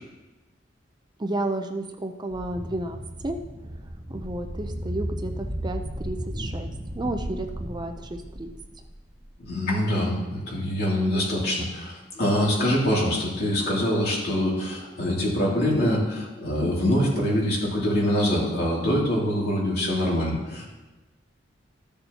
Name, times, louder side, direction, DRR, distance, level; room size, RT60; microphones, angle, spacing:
voice 1, 1.2-3.0 3.2-3.4 4.1-8.5, right 2 dB, 25° right, 5 dB, 0.5 m, -32 dB
sound 1, 2.3-9.4, equal, 45° right, 1.3 m, -35 dB
voice 2, 9.5-20.7, left 1 dB, 60° left, -4 dB, 2.7 m, -24 dB
13.5 x 6.9 x 2.8 m, 1.1 s
head